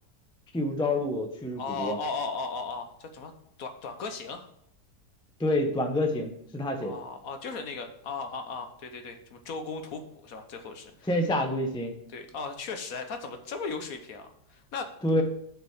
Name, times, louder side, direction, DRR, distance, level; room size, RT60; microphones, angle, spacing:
voice 1, 0.5-2.0 5.4-7.0 11.1-12.0 15.0-15.2, left 1 dB, 5° left, 4 dB, 0.4 m, -27 dB
voice 2, 1.6-3.3 3.6-4.5 6.8-11.1 12.1-14.9, left 4 dB, 60° left, 6 dB, 1.2 m, -37 dB
6.5 x 5.2 x 7.1 m, 0.71 s
omnidirectional pair, 1.9 m